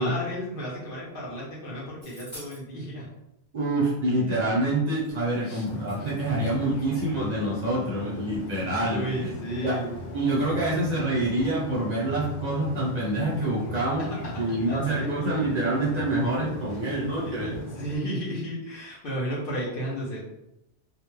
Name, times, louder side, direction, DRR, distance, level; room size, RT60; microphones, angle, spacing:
voice 1, 0.0-3.1 5.4-5.7 8.8-9.9 14.0-15.1 16.9-20.3, equal, 55° left, -5 dB, 0.8 m, -34 dB
sound 1, 2.0-2.6 4.6-4.7 4.9-6.7, equal, 40° left, 1.1 m, -49 dB
voice 2, 3.5-9.3 9.6-9.8 10.1-17.6, right 1 dB, 40° right, -7 dB, 0.7 m, -26 dB
sound 2, 5.6-18.0, equal, 90° left, 0.9 m, -39 dB
2.4 x 2.1 x 3.0 m, 0.88 s
omnidirectional pair, 1.2 m